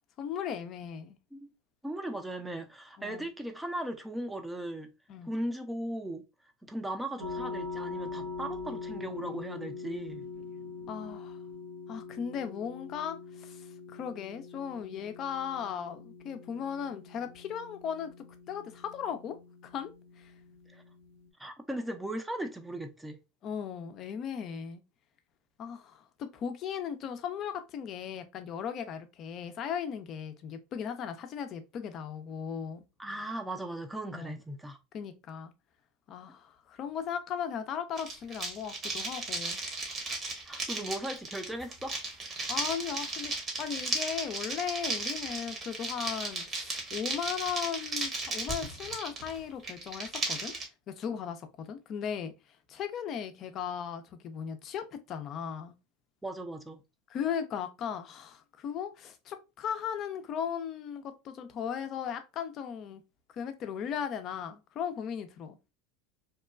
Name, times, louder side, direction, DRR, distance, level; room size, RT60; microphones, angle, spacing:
voice 1, 0.2-1.2 3.0-3.3 5.1-5.3 10.9-11.4 11.9-18.1 18.5-19.4 19.6-19.9 20.2-20.3 23.4-24.8 25.6-32.8 34.1-34.4 34.9-35.5 36.1-39.6 42.5-50.5 50.9-52.3 52.7-55.7 57.1-63.0 63.3-65.6, left 8 dB, 45° left, 0.5 m, -37 dB
voice 2, 1.8-4.9 5.2-6.2 6.6-10.2 20.7-20.8 21.4-23.2 33.0-34.8 40.4-41.9 56.2-56.8, right 1 dB, 5° right, 0.6 m, -37 dB
sound 1, 7.2-21.3, left 4 dB, 80° right, 0.8 m, -43 dB
sound 2, 38.0-50.6, right 3 dB, 35° right, 1.0 m, -35 dB
2.9 x 2.2 x 2.3 m
hypercardioid pair, 90°, 0 cm